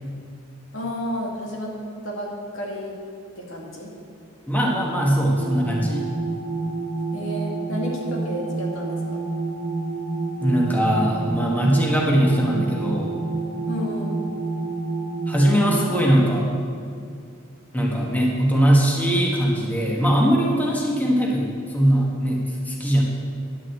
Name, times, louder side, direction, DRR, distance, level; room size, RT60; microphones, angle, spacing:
voice 1, 0.7-1.7 2.0-2.9 3.4-3.9 7.1-9.2 13.7-14.2, equal, 80° left, -2 dB, 2.3 m, -31 dB
voice 2, 4.5-6.1 10.4-13.1 15.3-16.5 17.7-23.0, equal, 10° left, -3 dB, 1.4 m, -20 dB
sound 1, 5.4-16.1, right 3 dB, 50° right, 1.4 m, -28 dB
10.5 x 6.3 x 7.6 m, 2.3 s
head